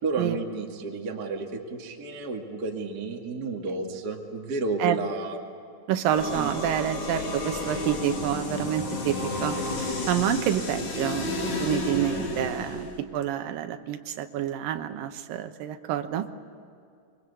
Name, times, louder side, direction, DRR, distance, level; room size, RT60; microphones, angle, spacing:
voice 1, 0.0-5.4 6.3-6.5, right 3 dB, 30° right, 1 dB, 2.1 m, -31 dB
voice 2, 5.9-16.3, right 10 dB, 70° right, 7 dB, 2.5 m, -28 dB
sound 1, 6.1-13.0, left 2 dB, 45° left, 4.2 m, -31 dB
27.0 x 22.5 x 8.2 m, 2.5 s
omnidirectional pair, 4.9 m